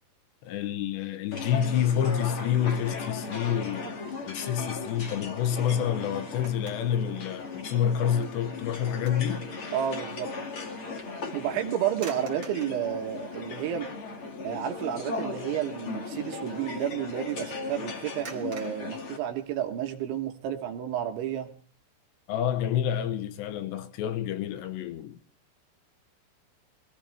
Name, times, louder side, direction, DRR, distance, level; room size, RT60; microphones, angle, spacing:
voice 1, 0.4-4.0 4.3-9.5 22.3-25.2, left 9 dB, 75° left, 2.9 m, -28 dB
sound 1, 1.3-19.2, left 4 dB, 40° left, 2.1 m, -37 dB
sound 2, 5.9-7.1 7.5-7.7 8.3-9.3 9.7-9.8 11.9-12.8 13.7-13.8 14.2-14.5 14.7-15.0 18.2-19.8, right 4 dB, 40° right, 1.7 m, -47 dB
voice 2, 9.7-10.3 11.3-13.9 14.4-21.5, right 10 dB, 75° right, 3.5 m, -31 dB
22.5 x 17.0 x 3.4 m
omnidirectional pair, 5.6 m